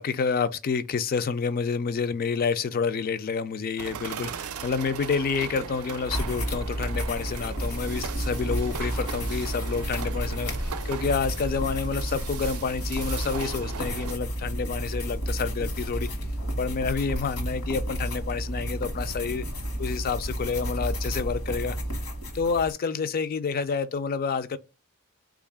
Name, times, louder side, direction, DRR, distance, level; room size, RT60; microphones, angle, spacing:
voice 1, 0.0-16.1 16.6-19.4 19.8-21.8 22.3-24.6, left 5 dB, 40° left, 0.3 m, -29 dB
sound 1, 3.8-14.1, right 6 dB, 70° right, 0.4 m, -38 dB
sound 2, 6.0-22.7, equal, 70° left, 1.2 m, -31 dB
3.7 x 2.4 x 3.5 m
head